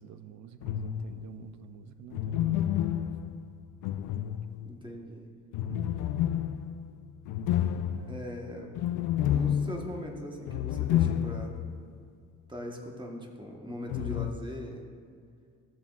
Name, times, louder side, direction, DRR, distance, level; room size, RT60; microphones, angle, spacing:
voice 1, 0.0-2.9 5.7-5.8 7.9-8.2, right 8 dB, 65° right, 11 dB, 0.6 m, -48 dB
sound 1, 0.6-1.3 2.1-4.9 5.5-11.8 12.0-12.1 13.9-14.3, left 11 dB, 80° left, 0.5 m, -30 dB
voice 2, 4.6-5.3 8.1-8.8 9.3-11.6 12.5-14.8, equal, 15° right, 1 dB, 1.3 m, -40 dB
14.0 x 7.1 x 2.5 m, 2.2 s
cardioid pair, 90°, 30 cm